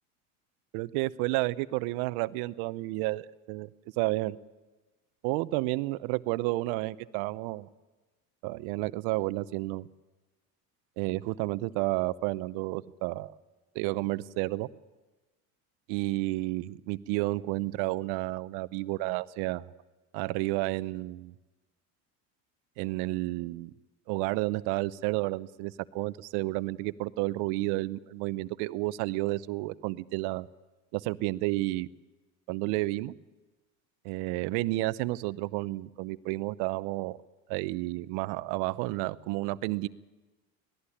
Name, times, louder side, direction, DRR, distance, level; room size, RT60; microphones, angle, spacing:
voice 1, 0.7-3.7 4.0-4.4 5.2-7.7 8.4-9.9 11.0-13.3 13.7-14.7 15.9-19.6 20.1-21.3 22.8-23.7 24.1-30.5 30.9-31.9 32.5-33.1 34.0-37.2 37.5-39.9, right 19 dB, 70° right, 16 dB, 0.8 m, -31 dB
19.0 x 13.5 x 9.9 m, 1.2 s
supercardioid pair, 100°, 41 cm